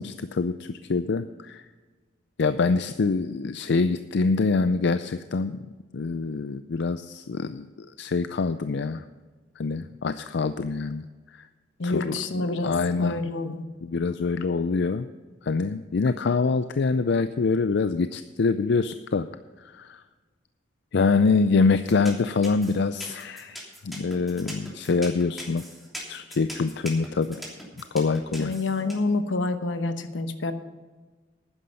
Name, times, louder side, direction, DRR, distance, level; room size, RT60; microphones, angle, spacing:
voice 1, 0.0-1.6 2.4-5.6 5.9-9.0 9.6-11.0 11.3-11.5 11.8-13.2 13.8-15.1 15.4-19.3 19.7-20.0 20.9-25.6 26.1-27.4 27.9-28.5, left 4 dB, 65° left, 11 dB, 0.5 m, -25 dB
voice 2, 11.8-13.6 28.4-30.5, left 2 dB, 80° left, 9 dB, 1.1 m, -28 dB
sound 1, 21.9-28.9, equal, ahead, 3.0 m, -40 dB
12.0 x 9.8 x 5.4 m, 1.4 s
head